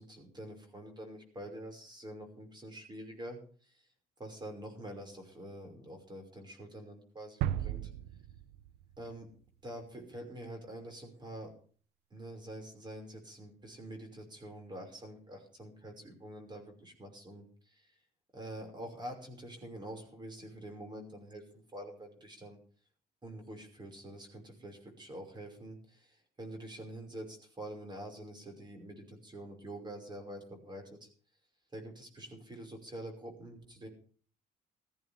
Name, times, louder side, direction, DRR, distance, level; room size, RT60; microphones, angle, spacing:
voice 1, 0.0-3.8 4.2-7.8 9.0-9.3 9.6-11.5 12.1-17.9 18.3-22.6 23.2-31.1 31.7-33.9, right 1 dB, 25° right, 4 dB, 5.5 m, -46 dB
sound 1, 7.4-9.3, right 12 dB, 85° right, 0.6 m, -36 dB
18.0 x 14.5 x 3.6 m, 0.44 s
cardioid pair, 110°, 17 cm